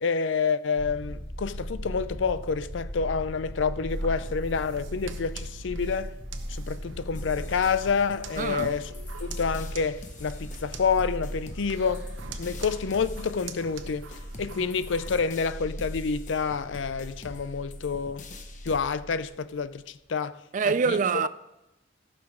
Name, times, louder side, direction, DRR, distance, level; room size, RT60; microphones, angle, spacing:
voice 1, 0.0-6.1 6.5-8.9 9.2-12.1 12.4-14.0 14.4-18.3 18.6-21.0, left 5 dB, 75° left, 0.5 m, -28 dB
sound 1, 0.8-19.6, equal, 20° left, 3.5 m, -38 dB
sound 2, 3.9-15.1, right 5 dB, 85° right, 0.9 m, -46 dB
sound 3, 7.1-18.8, left 3 dB, 40° left, 1.0 m, -47 dB
voice 2, 8.4-8.7 20.5-21.3, right 5 dB, 40° right, 0.4 m, -25 dB
14.5 x 6.2 x 5.0 m
head